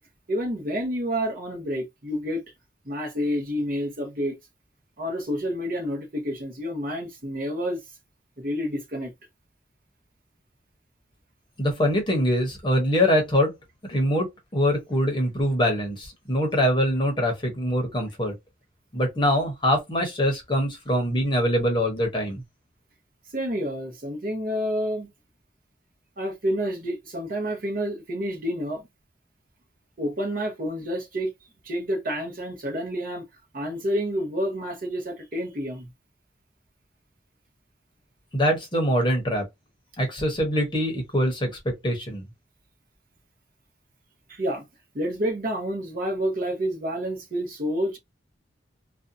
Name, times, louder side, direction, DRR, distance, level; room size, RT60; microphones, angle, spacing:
voice 1, 0.3-2.4 2.9-4.4 5.0-7.8 8.4-9.1 23.3-25.1 26.2-28.9 30.0-31.3 31.6-33.2 33.5-35.9 44.3-44.7 44.9-48.0, equal, 50° right, 0.8 m, -29 dB
voice 2, 11.6-13.5 13.9-18.3 18.9-22.4 38.3-39.4 40.0-42.2, equal, 25° left, 0.8 m, -24 dB
2.6 x 2.2 x 2.6 m
head